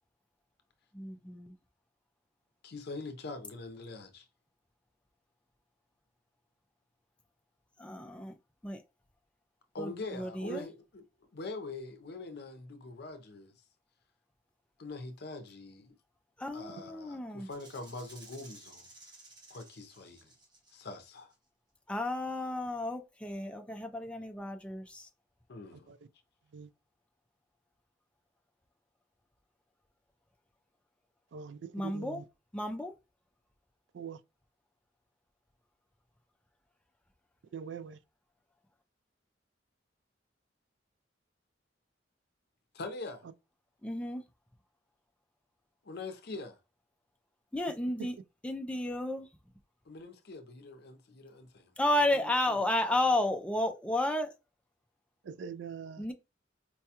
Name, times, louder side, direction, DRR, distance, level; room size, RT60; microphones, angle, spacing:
voice 1, 0.9-1.5 7.8-8.3 8.6-8.8 9.8-10.7 16.4-17.5 21.9-25.1 31.7-32.2 32.5-32.9 43.8-44.2 47.5-48.1 48.4-49.3 51.8-54.3 56.0-56.1, left 1 dB, 5° left, 0.4 m, -32 dB
voice 2, 2.6-4.2 9.7-10.7 11.3-13.5 14.8-15.9 16.5-18.9 19.5-20.3 20.7-21.3 25.5-25.9 42.7-43.3 45.8-46.6 49.9-52.6, left 3 dB, 60° left, 0.6 m, -43 dB
Rattle (instrument), 17.5-21.3, right 2 dB, 25° right, 0.9 m, -56 dB
voice 3, 31.3-32.3 33.9-34.2 37.5-38.0 48.0-48.1 55.2-56.1, right 6 dB, 70° right, 0.3 m, -42 dB
4.5 x 2.2 x 2.8 m
head